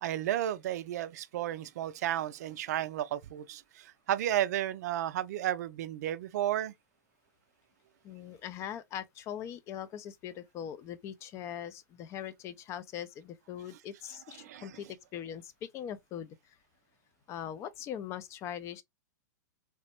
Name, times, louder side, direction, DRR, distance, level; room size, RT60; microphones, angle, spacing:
voice 1, 0.0-6.7 14.4-14.7, right 12 dB, 60° right, 0.4 m, -33 dB
voice 2, 8.0-16.4 17.3-18.8, left 9 dB, 30° left, 0.4 m, -41 dB
3.2 x 2.0 x 2.8 m
hypercardioid pair, 125°, 10 cm